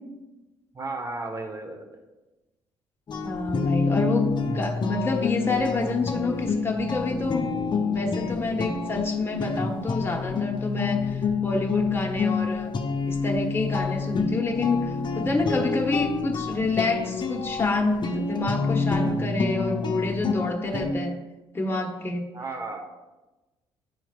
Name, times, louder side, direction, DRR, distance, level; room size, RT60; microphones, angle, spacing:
voice 1, 0.7-2.0 22.3-22.8, right 3 dB, 25° right, 4 dB, 1.0 m, -34 dB
sound 1, 3.1-20.9, left 4 dB, 35° left, 0.7 m, -27 dB
voice 2, 3.2-7.5 7.9-12.7 13.1-21.2 21.5-22.3, left 3 dB, 20° left, 0 dB, 1.0 m, -28 dB
9.3 x 4.5 x 2.4 m, 1.1 s
hypercardioid pair, 50°, 13 cm